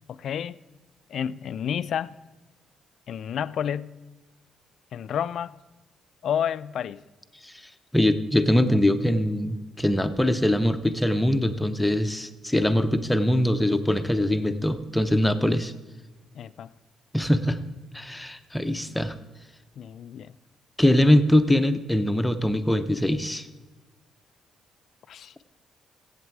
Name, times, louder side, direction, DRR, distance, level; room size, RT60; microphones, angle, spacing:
voice 1, 0.1-0.6 1.1-2.1 3.1-3.9 4.9-5.6 6.2-7.0 16.3-16.7 19.8-20.3 25.1-25.3, left 9 dB, 65° left, 0.4 m, -30 dB
voice 2, 7.9-15.7 17.1-17.6 17.9-19.1 20.8-23.5, left 1 dB, 5° left, 0.8 m, -22 dB
15.0 x 8.2 x 4.7 m
cardioid pair, 90°, 0 cm